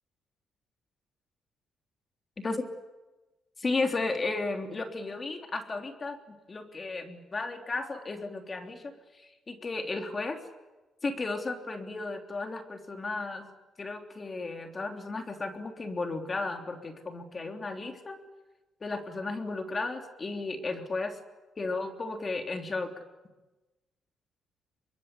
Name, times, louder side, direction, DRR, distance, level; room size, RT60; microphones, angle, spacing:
voice 1, 3.6-10.4 11.0-13.5 13.8-18.2 18.8-21.2 21.6-22.9, left 3 dB, 30° left, 5 dB, 3.4 m, -34 dB
24.5 x 22.0 x 9.9 m, 1.1 s
cardioid pair, 90°, 0 cm